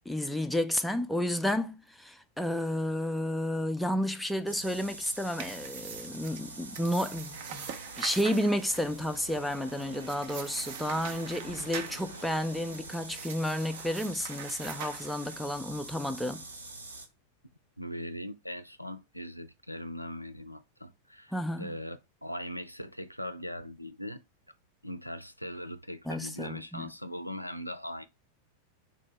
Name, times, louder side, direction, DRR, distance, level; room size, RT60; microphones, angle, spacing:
voice 1, 0.0-7.7 8.0-16.4 21.3-21.7 26.1-26.9, equal, ahead, 0.4 m, -31 dB
sound 1, 4.5-17.1, right 2 dB, 80° right, 0.8 m, -45 dB
sound 2, 4.8-15.6, right 8 dB, 50° right, 0.6 m, -44 dB
voice 2, 17.8-24.2 24.8-28.0, equal, 90° left, 0.3 m, -40 dB
3.7 x 2.6 x 3.1 m
figure-of-eight pair, 90°, 0 cm